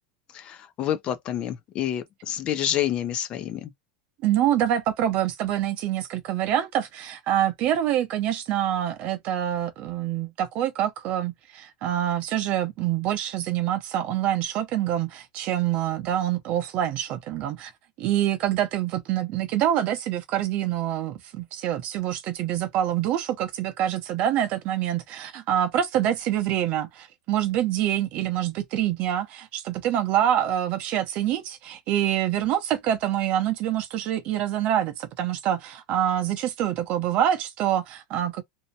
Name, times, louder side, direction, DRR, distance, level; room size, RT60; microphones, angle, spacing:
voice 1, 0.3-3.7, left 11 dB, 30° left, 0.3 m, -28 dB
voice 2, 4.2-17.7 18.0-38.4, right 11 dB, 35° right, 0.6 m, -26 dB
2.6 x 2.1 x 2.6 m
supercardioid pair, 165°, 4 cm